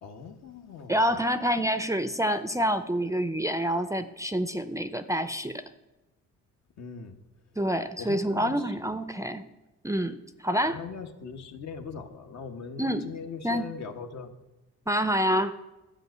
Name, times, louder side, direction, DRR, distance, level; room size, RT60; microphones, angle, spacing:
voice 1, 0.0-1.2 6.8-7.2 8.0-8.8 10.7-14.4, left 6 dB, 65° left, 5 dB, 1.3 m, -40 dB
voice 2, 0.9-5.6 7.6-9.5 9.8-10.8 12.8-13.1 13.4-13.7 14.9-15.6, equal, 10° right, 11 dB, 0.5 m, -27 dB
12.5 x 5.2 x 8.0 m, 1.0 s
cardioid pair, 90°, 30 cm